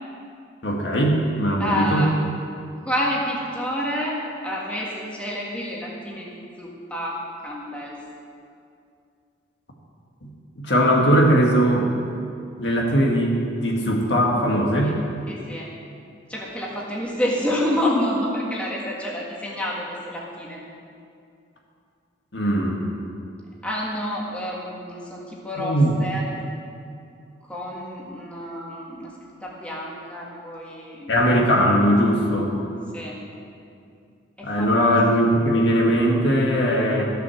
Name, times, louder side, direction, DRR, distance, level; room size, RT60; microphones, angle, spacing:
voice 1, 0.6-2.1 10.2-10.3 10.6-11.9 12.6-15.0 22.3-22.8 25.6-26.0 31.1-32.6 34.4-37.0, equal, 60° left, -1 dB, 1.8 m, -20 dB
voice 2, 1.6-2.1 2.9-8.0 14.8-14.9 15.3-15.7 16.3-20.6 23.6-26.3 27.5-29.1 29.4-31.1 32.9-33.2 34.4-35.0, left 1 dB, 5° left, -4 dB, 1.6 m, -28 dB
14.0 x 6.9 x 7.2 m, 2.4 s
head